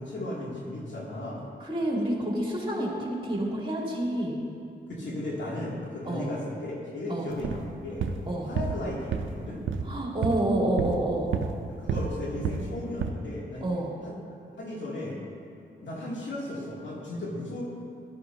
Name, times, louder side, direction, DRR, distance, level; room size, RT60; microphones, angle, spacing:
voice 1, 0.0-1.4 4.9-8.0 8.4-9.6 11.7-13.7 14.0-14.2 14.6-15.2 15.8-17.6, left 1 dB, 70° left, -5 dB, 2.5 m, -35 dB
voice 2, 1.6-4.4 6.0-6.3 7.1-7.3 8.3-8.5 9.8-11.3 11.9-12.0 13.6-13.9, right 1 dB, 25° right, -3 dB, 2.9 m, -28 dB
sound 1, 7.3-7.7 8.0-8.3 8.5-8.8 9.1-9.4 9.7-9.9 10.2-10.5 10.8-11.6 11.9-12.2 12.4-12.7 13.0-13.1, right 6 dB, 80° right, 0.6 m, -30 dB
14.0 x 11.5 x 2.8 m, 2.6 s
cardioid pair, 45°, 20 cm